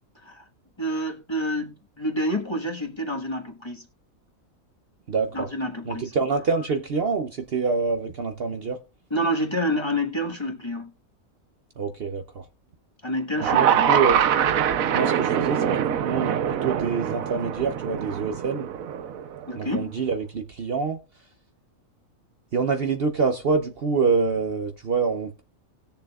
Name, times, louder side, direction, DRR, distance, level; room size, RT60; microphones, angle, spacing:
voice 1, 0.8-3.8 5.3-6.1 9.1-10.9 13.0-13.9 19.5-19.9, equal, 20° left, 1.4 m, -28 dB
voice 2, 5.1-5.5 5.9-8.8 11.8-12.4 13.4-14.2 14.9-18.7 19.6-21.0 22.5-25.4, right 4 dB, 55° right, 0.8 m, -26 dB
sound 1, 13.4-19.6, right 9 dB, 80° right, 1.2 m, -24 dB
18.5 x 6.9 x 2.4 m
omnidirectional pair, 1.4 m